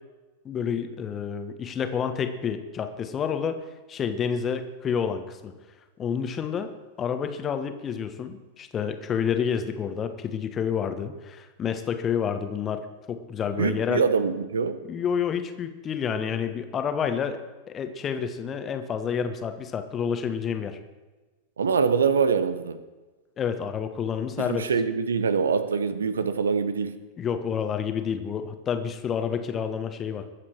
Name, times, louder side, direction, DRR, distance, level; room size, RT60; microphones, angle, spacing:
voice 1, 0.4-3.6 3.9-5.5 6.0-12.8 13.1-14.0 14.8-17.4 17.7-20.8 23.4-24.7 27.2-30.2, left 7 dB, 25° left, 8 dB, 1.4 m, -29 dB
voice 2, 13.6-14.8 21.6-22.8 24.4-27.0, right 5 dB, 70° right, 12 dB, 1.0 m, -24 dB
22.0 x 8.3 x 4.7 m, 1.2 s
figure-of-eight pair, 90°, 0 cm